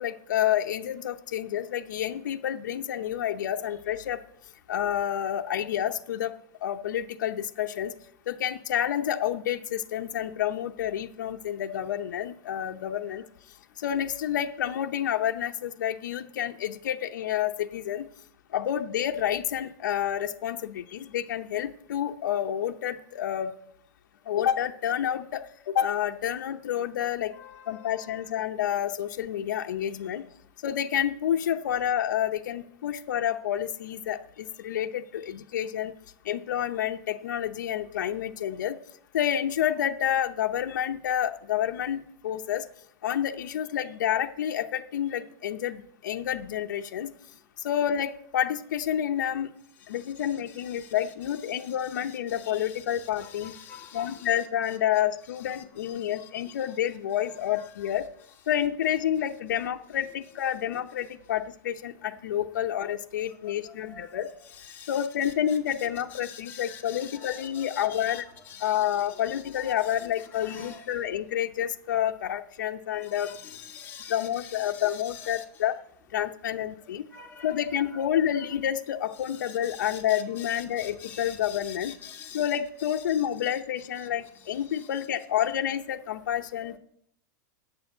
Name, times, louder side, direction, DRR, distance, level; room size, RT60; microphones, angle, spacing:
voice 1, 0.0-4.2 4.7-6.3 6.6-7.9 8.3-13.2 13.8-18.1 18.5-23.5 24.3-27.3 27.7-30.2 30.6-35.9 36.2-38.8 39.1-42.6 43.0-47.1 47.6-49.5 49.9-53.5 53.9-58.1 58.5-64.3 64.9-68.2 68.6-73.3 74.1-75.7 76.1-77.0 77.4-81.9 82.3-86.8, left 10 dB, 90° left, 5 dB, 0.7 m, -29 dB
voice 2, 27.3-28.3 50.0-50.9 51.5-54.8 55.8-56.6 57.5-57.9 62.7-62.8 63.3-63.4 63.7-64.2 64.5-70.9 72.9-75.4 77.1-77.6 77.9-78.1 79.2-82.6 83.1-84.1 84.7-84.9 85.4-85.5 86.6-86.8, left 7 dB, 20° left, -1 dB, 2.0 m, -46 dB
8.5 x 6.9 x 7.9 m, 0.72 s
supercardioid pair, 155°, 10 cm